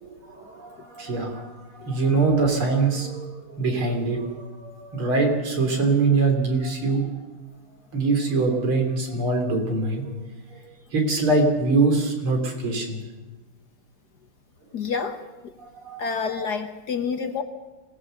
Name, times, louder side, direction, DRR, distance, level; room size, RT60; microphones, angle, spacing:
voice 1, 0.0-7.1 7.9-10.0 10.5-10.6 10.9-13.0 15.7-16.0 16.4-16.5, right 3 dB, 75° right, 3 dB, 4.2 m, -23 dB
voice 2, 14.7-15.2 16.0-17.4, left 5 dB, 55° left, 7 dB, 1.6 m, -28 dB
25.5 x 17.0 x 6.7 m, 1.1 s
omnidirectional pair, 2.3 m